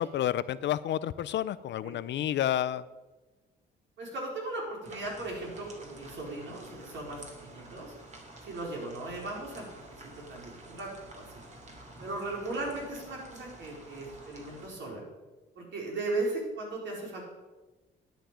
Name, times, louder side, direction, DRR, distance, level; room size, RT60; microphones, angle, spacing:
voice 1, 0.0-2.8, left 11 dB, 65° left, 17 dB, 0.5 m, -30 dB
voice 2, 4.0-7.9 8.4-11.3 12.0-15.0 15.6-17.2, right 2 dB, 65° right, -2 dB, 4.4 m, -37 dB
sound 1, 4.9-14.7, right 1 dB, 35° right, 2.7 m, -50 dB
12.0 x 9.2 x 5.1 m, 1.2 s
cardioid pair, 90°, 20 cm